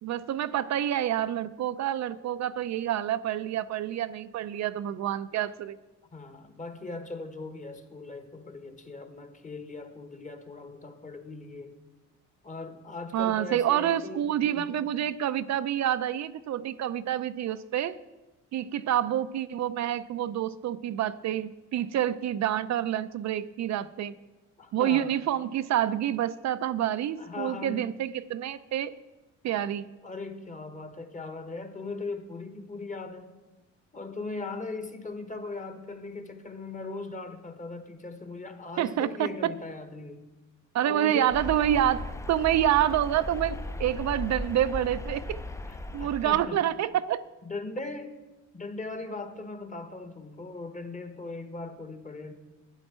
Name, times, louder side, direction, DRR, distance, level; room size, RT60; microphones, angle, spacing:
voice 1, 0.0-5.8 13.1-18.0 18.5-24.1 24.7-28.9 29.4-29.9 38.8-39.5 40.7-45.4 45.9-47.2, right 11 dB, 65° right, 13 dB, 0.5 m, -28 dB
voice 2, 6.1-11.8 12.4-14.9 24.6-25.2 27.2-27.9 30.0-33.4 33.9-40.2 40.8-41.4 45.7-46.6 47.4-48.1 48.5-52.3, left 3 dB, 25° left, 7 dB, 1.3 m, -39 dB
sound 1, 41.3-46.4, left 2 dB, 10° left, 0.5 m, -37 dB
12.0 x 9.8 x 4.3 m, 1.1 s
cardioid pair, 90°, 30 cm